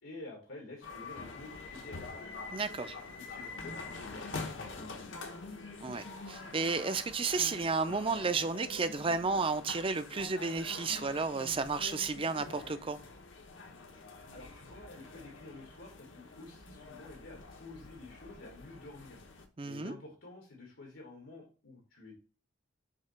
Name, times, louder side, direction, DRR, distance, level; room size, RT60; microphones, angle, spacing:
voice 1, 0.0-2.5 3.1-5.1 14.3-19.2 19.6-22.2, left 2 dB, 85° left, 2.1 m, -50 dB
sound 1, 0.8-19.5, left 3 dB, 70° left, 1.1 m, -46 dB
voice 2, 2.5-3.0 5.8-13.0 19.6-20.0, right 4 dB, 25° right, 0.5 m, -32 dB
7.4 x 2.9 x 5.7 m
head